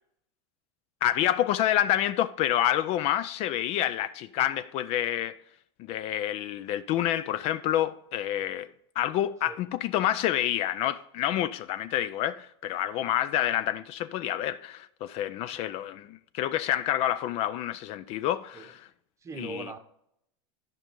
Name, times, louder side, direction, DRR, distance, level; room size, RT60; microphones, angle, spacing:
voice 1, 1.0-5.4 5.9-8.7 9.0-18.8 19.4-19.6, left 12 dB, 45° left, 0.3 m, -28 dB
voice 2, 19.2-19.8, right 4 dB, 20° right, 0.8 m, -41 dB
13.0 x 5.2 x 3.7 m
supercardioid pair, 125°, 15 cm